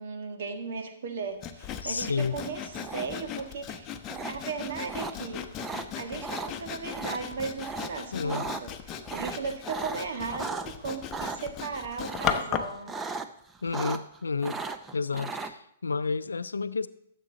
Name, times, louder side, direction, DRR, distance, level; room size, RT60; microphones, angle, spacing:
voice 1, 0.0-3.9 4.3-5.5 6.0-12.9, right 5 dB, 60° right, 5 dB, 1.7 m, -36 dB
Sawing, 1.4-12.8, left 8 dB, 25° left, 0.9 m, -37 dB
voice 2, 1.8-2.4 8.1-8.5 13.6-14.6 14.9-16.9, left 4 dB, 80° left, 15 dB, 0.5 m, -30 dB
sound 1, 2.7-3.3 4.1-4.3 4.9-5.1 5.6-5.9 6.2-6.5 6.9-7.2 7.6-7.9 8.2-8.6 9.0-10.7 11.1-11.4 12.0-12.5 12.9-13.3 13.5-14.2 14.4-15.5, right 4 dB, 15° right, 0.6 m, -36 dB
13.5 x 7.5 x 4.0 m, 0.73 s
figure-of-eight pair, 120°, 0 cm